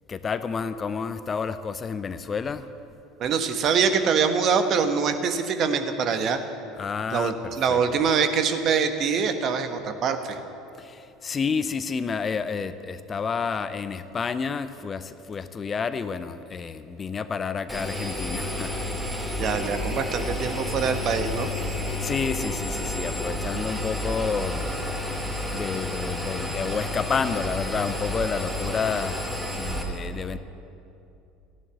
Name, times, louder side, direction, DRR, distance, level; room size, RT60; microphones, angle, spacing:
voice 1, 0.1-2.7 6.8-7.8 10.8-18.9 21.6-25.1 25.5-30.4, left 5 dB, 30° left, 12 dB, 0.6 m, -30 dB
voice 2, 3.2-6.4 7.1-10.4 19.3-21.5, right 6 dB, 45° right, 8 dB, 1.3 m, -24 dB
Engine, 17.7-29.8, left 1 dB, 5° right, 2.4 m, -30 dB
14.5 x 11.0 x 8.2 m, 2.7 s
figure-of-eight pair, 65°, 0 cm